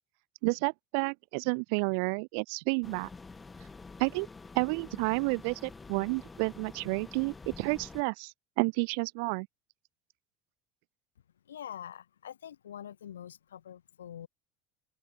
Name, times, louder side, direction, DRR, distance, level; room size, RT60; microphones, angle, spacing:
voice 1, 0.4-3.1 4.0-4.3 4.5-9.5, right 37 dB, 65° right, 0.3 m, -30 dB
sound 1, 2.8-8.0, left 4 dB, 20° left, 1.7 m, -48 dB
voice 2, 11.4-14.3, left 9 dB, 80° left, 1.4 m, -45 dB
open air
hypercardioid pair, 75°, 0 cm